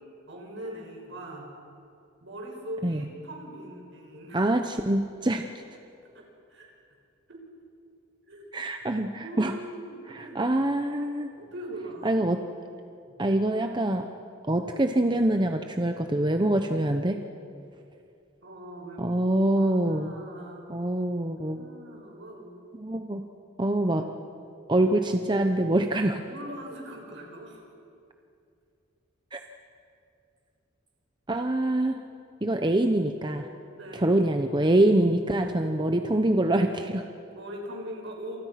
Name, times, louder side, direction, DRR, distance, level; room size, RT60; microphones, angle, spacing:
voice 1, 0.3-1.5 2.2-4.5 6.1-6.7 7.3-7.5 8.3-8.5 9.1-10.5 11.4-12.2 18.4-19.2 19.6-20.6 21.4-22.6 26.2-27.7 33.7-34.2 37.2-38.4, right 1 dB, 65° right, 1 dB, 6.2 m, -41 dB
voice 2, 4.3-5.4 8.5-9.5 10.1-11.3 12.0-12.4 13.2-14.0 14.5-17.2 19.0-20.1 20.7-21.6 22.8-23.2 23.6-24.1 24.7-26.2 29.3-29.4 31.3-31.9 32.4-33.5 33.9-37.1, right 1 dB, 25° right, 5 dB, 0.9 m, -25 dB
29.0 x 27.5 x 5.9 m, 2.5 s
head